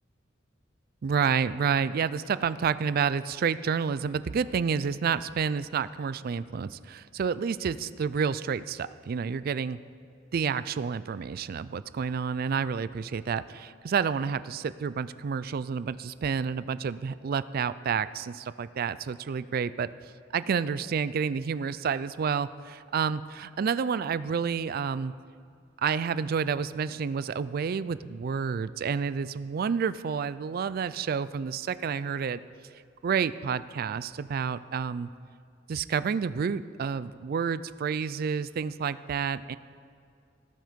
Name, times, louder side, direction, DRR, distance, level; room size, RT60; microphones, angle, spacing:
voice 1, 1.0-9.8 10.3-19.9 20.3-25.1 25.8-32.4 33.0-35.1 35.7-39.6, right 6 dB, 50° right, 16 dB, 0.4 m, -29 dB
18.0 x 6.4 x 5.2 m, 2.3 s
head